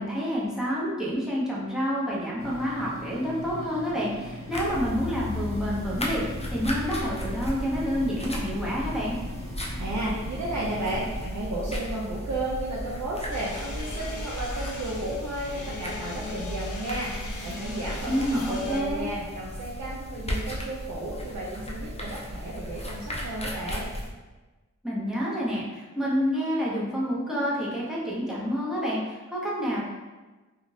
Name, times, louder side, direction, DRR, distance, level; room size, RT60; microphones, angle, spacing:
voice 1, 0.0-9.2 18.1-19.1 24.8-29.8, equal, ahead, -6 dB, 0.9 m, -28 dB
sound 1, 2.4-11.2, equal, 45° right, 1.0 m, -40 dB
sound 2, 4.5-24.1, left 1 dB, 20° left, 0.5 m, -35 dB
voice 2, 9.8-23.9, right 1 dB, 60° right, -5 dB, 0.5 m, -33 dB
sound 3, 13.3-18.8, left 3 dB, 75° left, 0.5 m, -40 dB
2.4 x 2.4 x 3.2 m, 1.2 s
wide cardioid pair, 40°, 31 cm